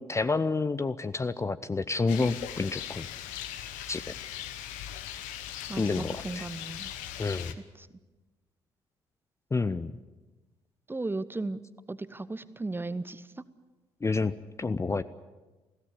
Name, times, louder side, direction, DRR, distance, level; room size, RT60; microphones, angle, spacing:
voice 1, 0.0-3.1 3.9-4.0 5.8-6.4 7.2-7.6 9.5-9.9 14.0-15.0, left 3 dB, 20° left, 13 dB, 0.7 m, -29 dB
Rain, 2.1-7.5, left 11 dB, 60° left, 1.2 m, -40 dB
voice 2, 5.7-6.9 7.8-7.9 10.9-11.6 11.9-13.4, right 2 dB, 15° right, 16 dB, 1.0 m, -35 dB
21.0 x 16.5 x 10.0 m, 1.2 s
figure-of-eight pair, 45°, 14 cm